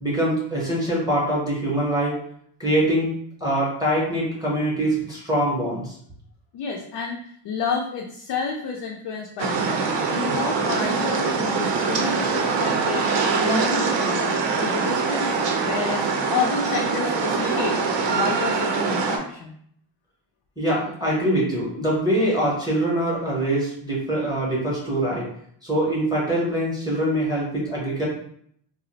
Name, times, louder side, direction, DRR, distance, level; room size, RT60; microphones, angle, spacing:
voice 1, 0.0-2.1 2.6-3.1 3.4-5.9 20.6-25.3 25.6-28.1, right 1 dB, 10° right, -6 dB, 0.6 m, -23 dB
voice 2, 6.5-15.4 15.6-17.8 18.1-19.5, left 5 dB, 55° left, 0 dB, 0.5 m, -30 dB
sound 1, 9.4-19.2, right 4 dB, 60° right, 0.5 m, -23 dB
2.3 x 2.0 x 3.9 m, 0.65 s
wide cardioid pair, 160°, 50 cm